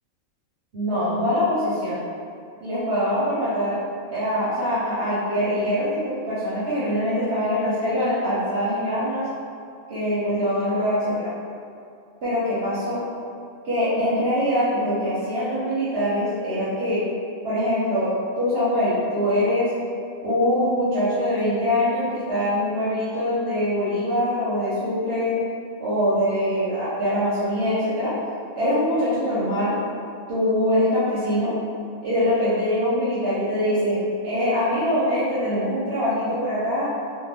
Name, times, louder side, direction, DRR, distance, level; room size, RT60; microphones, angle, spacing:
voice 1, 0.7-2.0 2.6-3.8 4.1-9.3 9.9-11.3 12.2-13.0 13.6-17.0 17.4-18.1 18.4-19.7 20.2-25.4 25.8-28.1 28.6-29.7 30.3-31.5 32.0-34.0 34.2-36.9, equal, 55° right, -11 dB, 0.8 m, -23 dB
2.5 x 2.3 x 3.3 m, 2.4 s
omnidirectional pair, 1.4 m